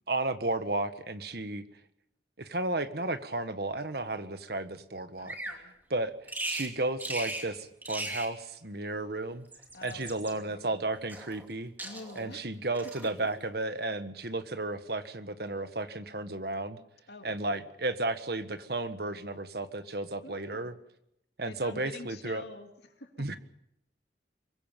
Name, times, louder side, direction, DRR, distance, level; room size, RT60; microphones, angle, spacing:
voice 1, 0.1-1.6 2.4-5.4 5.9-6.1 6.4-9.5 9.8-11.7 12.1-16.8 17.2-20.7 21.4-22.4 23.2-23.4, right 2 dB, 55° right, 10 dB, 1.5 m, -33 dB
voice 2, 5.2-5.7 9.7-10.8 11.8-12.5 17.1-17.7 20.2-20.7 21.5-23.4, left 2 dB, 65° left, 5 dB, 2.6 m, -47 dB
Bird vocalization bird call bird song, 5.3-5.6 6.3-6.7 7.0-7.5 7.8-8.3 9.3-10.3 11.1-11.5 11.8-12.3 12.7-13.1, right 2 dB, 10° right, 2.7 m, -37 dB
24.0 x 21.5 x 5.4 m, 0.79 s
head